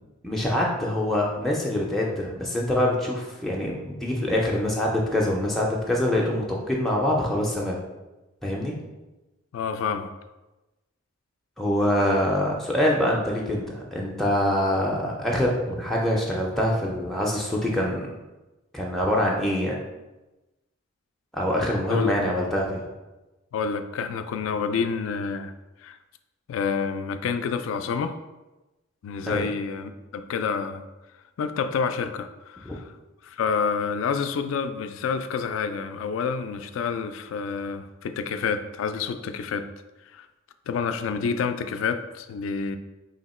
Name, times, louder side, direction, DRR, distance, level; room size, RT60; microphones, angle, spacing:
voice 1, 0.2-7.8 8.4-8.8 11.6-18.1 18.7-19.8 21.3-22.8 29.3-29.5 32.6-32.7, left 1 dB, ahead, -3 dB, 0.4 m, -25 dB
voice 2, 9.5-10.1 21.9-22.3 23.5-25.5 25.8-26.0 26.5-28.2 29.0-30.8 31.4-32.8 33.2-39.7 40.1-40.3 40.7-42.8, left 5 dB, 75° left, 10 dB, 0.3 m, -28 dB
2.9 x 2.8 x 4.1 m, 1.1 s
head